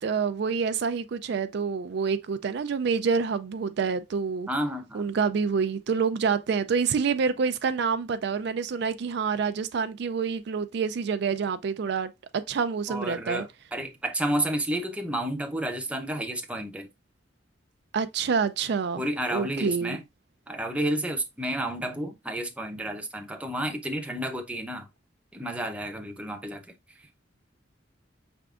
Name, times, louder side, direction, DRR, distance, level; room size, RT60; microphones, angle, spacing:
voice 1, 0.0-4.5 4.9-13.4 17.9-19.0 19.3-20.0, right 5 dB, 60° right, 0.4 m, -27 dB
voice 2, 4.5-5.0 12.9-16.9 19.0-20.0 20.5-24.9 25.3-26.7, right 1 dB, 5° right, 0.7 m, -31 dB
5.8 x 3.5 x 2.4 m
head